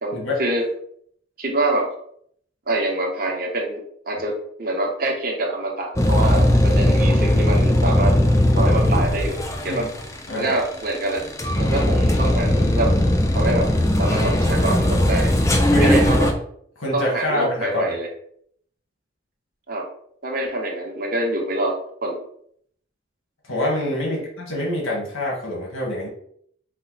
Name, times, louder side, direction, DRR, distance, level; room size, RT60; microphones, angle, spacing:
voice 1, 0.0-0.6 1.4-1.9 2.7-4.3 4.6-8.2 8.6-9.4 9.6-9.8 10.3-11.2 11.6-12.9 13.3-13.7 14.0-15.3 15.8-16.3 16.9-18.1 19.7-19.8 20.2-21.7 22.0-22.2 24.1-24.2, right 2 dB, 45° right, 0 dB, 1.0 m, -25 dB
sound 1, 6.0-16.3, left 1 dB, 15° left, 0.4 m, -19 dB
voice 2, 15.6-16.1 16.8-18.0 23.5-26.1, left 1 dB, 85° left, -3 dB, 1.5 m, -25 dB
5.4 x 2.2 x 4.0 m, 0.66 s
head